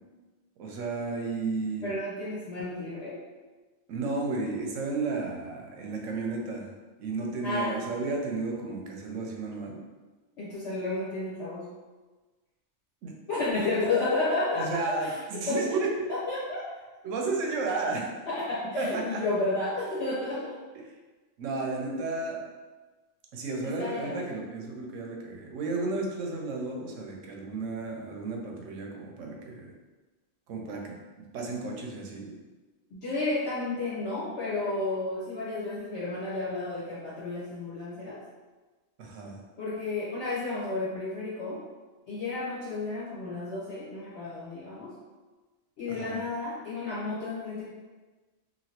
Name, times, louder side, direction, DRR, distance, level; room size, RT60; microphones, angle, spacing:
voice 1, 0.6-1.9 3.9-6.7 7.0-9.8 13.0-13.1 14.5-16.1 17.0-18.1 18.8-19.2 21.4-22.4 23.3-29.7 30.5-31.0 31.3-32.3 39.0-39.4 45.9-46.2, right 3 dB, 90° right, 0 dB, 1.0 m, -33 dB
voice 2, 1.8-3.2 7.4-7.8 10.4-11.6 13.3-15.1 15.5-15.6 16.1-16.6 18.3-20.6 23.6-24.2 32.9-38.2 39.6-41.6 42.1-44.9 45.8-47.6, left 2 dB, 65° left, -9 dB, 1.2 m, -32 dB
3.0 x 2.7 x 2.8 m, 1.3 s
omnidirectional pair, 1.3 m